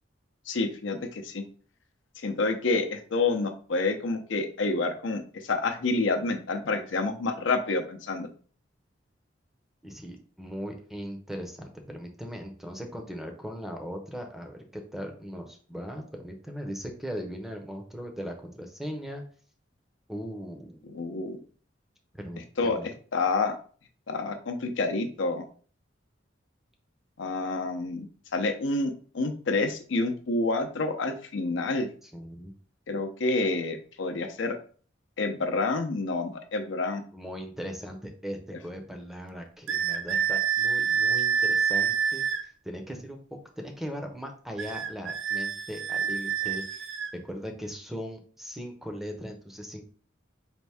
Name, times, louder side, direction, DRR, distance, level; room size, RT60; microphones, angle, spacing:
voice 1, 0.5-1.4 2.2-8.3 20.9-21.4 22.6-23.6 24.1-25.4 27.2-28.1 28.3-31.9 32.9-34.6 35.2-37.0, left 3 dB, 80° left, 5 dB, 0.6 m, -28 dB
voice 2, 9.8-19.2 20.1-20.8 22.2-22.9 32.0-32.5 37.1-42.2 42.6-43.2 43.6-46.9 47.2-49.8, equal, ahead, 4 dB, 0.6 m, -39 dB
sound 1, 39.7-42.4 44.6-47.1, right 7 dB, 85° right, 0.5 m, -27 dB
4.3 x 2.6 x 3.4 m, 0.43 s
head